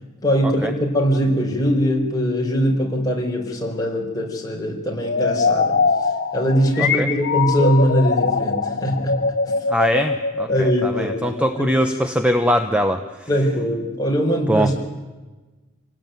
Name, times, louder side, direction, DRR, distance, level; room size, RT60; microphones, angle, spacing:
voice 1, 0.2-5.8 6.3-9.2 10.5-11.3 11.6-11.7 13.3-14.8, equal, 15° left, -1 dB, 4.6 m, -21 dB
sound 1, 5.0-11.7, left 4 dB, 45° left, 1.6 m, -22 dB
voice 2, 6.8-7.1 9.7-13.3 14.5-14.7, equal, 5° right, 7 dB, 0.9 m, -22 dB
26.5 x 18.5 x 9.3 m, 1.2 s
head